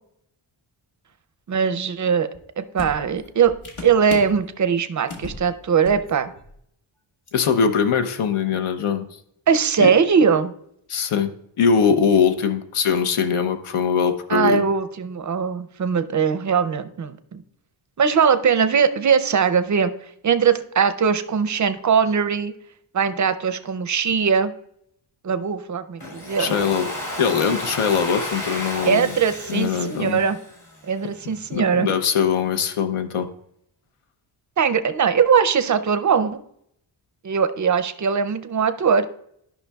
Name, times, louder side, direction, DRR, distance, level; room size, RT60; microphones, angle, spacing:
voice 1, 1.5-2.3 2.6-3.5 3.8-6.3 9.5-10.5 14.3-17.4 18.0-19.9 20.2-22.5 22.9-24.5 25.2-26.5 28.8-30.4 30.8-31.9 34.6-36.4 37.2-39.1, right 6 dB, 40° right, 11 dB, 0.4 m, -20 dB
sound 1, 2.3-2.4 2.8-4.4 5.1-5.4 5.7-6.1 6.4-6.5 7.3-7.4, left 2 dB, 65° left, 1.5 m, -36 dB
voice 2, 7.3-9.1 9.8-9.9 10.9-11.3 11.6-14.6 26.4-26.9 27.2-29.1 29.5-30.2 31.3-33.3, left 6 dB, 85° left, 7 dB, 0.8 m, -21 dB
Domestic sounds home sounds, 26.0-31.0, left 1 dB, 45° left, 2.3 m, -32 dB
12.5 x 5.7 x 2.3 m, 0.72 s
wide cardioid pair, 145°, 49 cm